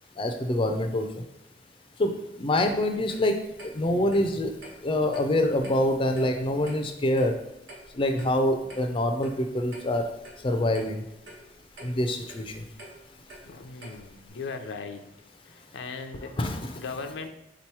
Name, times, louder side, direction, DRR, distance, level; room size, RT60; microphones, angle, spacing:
voice 1, 0.2-1.1 2.0-2.1 2.4-3.3 3.8-4.5 4.8-7.3 8.0-10.0 10.4-11.0 11.8-12.4 16.4-16.7, left 1 dB, 30° left, 5 dB, 0.4 m, -25 dB
Clock, 2.6-14.3, right 1 dB, 75° right, 1.2 m, -49 dB
voice 2, 3.8-4.2 13.4-15.0 15.5-16.3 16.8-17.3, left 4 dB, 85° left, 6 dB, 0.5 m, -38 dB
3.7 x 2.9 x 4.6 m, 0.86 s
head